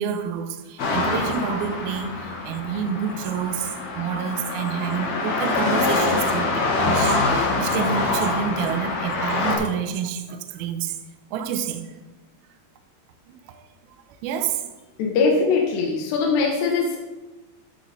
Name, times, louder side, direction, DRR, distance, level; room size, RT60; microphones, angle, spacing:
voice 1, 0.0-10.9 11.3-11.8 13.3-13.6 14.1-14.6, right 7 dB, 80° right, 6 dB, 2.2 m, -28 dB
sound 1, 0.8-9.6, left 3 dB, 60° left, 2.0 m, -25 dB
voice 2, 15.0-17.0, left 4 dB, 75° left, -1 dB, 3.0 m, -21 dB
14.0 x 4.7 x 4.1 m, 1.1 s
omnidirectional pair, 5.4 m